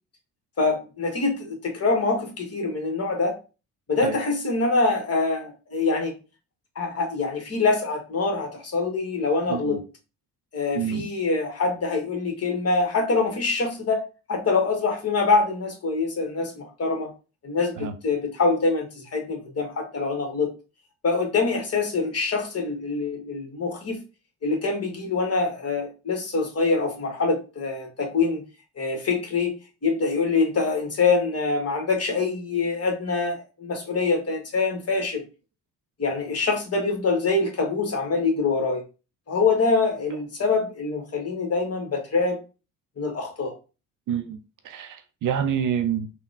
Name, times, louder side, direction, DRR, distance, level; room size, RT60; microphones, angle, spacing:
voice 1, 0.6-3.4 3.9-6.1 6.7-9.8 10.5-14.0 14.3-17.1 17.4-20.5 21.0-24.0 24.4-28.4 28.8-29.6 29.8-35.2 36.0-38.8 39.3-42.4 43.0-43.5, left 4 dB, 35° left, 2 dB, 1.2 m, -25 dB
voice 2, 10.8-11.1 17.8-17.9 44.1-44.4 44.6-46.1, right 8 dB, 50° right, 8 dB, 0.5 m, -27 dB
3.5 x 2.1 x 2.4 m, 0.32 s
hypercardioid pair, 60°, 41 cm